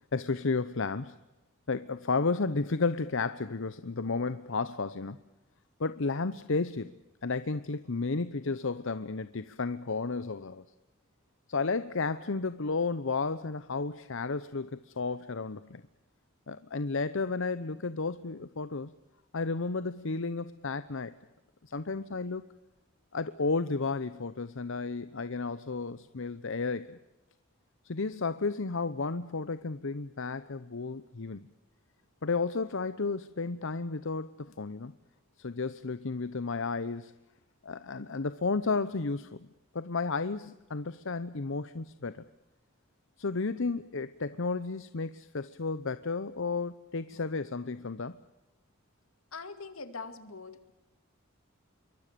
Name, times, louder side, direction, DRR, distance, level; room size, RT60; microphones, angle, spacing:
voice 1, 0.1-1.2 1.7-5.2 5.8-10.6 11.5-15.8 16.5-18.9 19.3-21.1 21.6-22.5 23.1-27.0 27.8-31.5 32.2-34.9 35.4-37.1 37.6-39.5 39.7-42.2 43.2-48.2, left 4 dB, 65° left, 13 dB, 0.9 m, -32 dB
voice 2, 49.3-50.7, left 4 dB, 85° left, 10 dB, 2.4 m, -42 dB
27.5 x 23.5 x 6.9 m, 1.0 s
head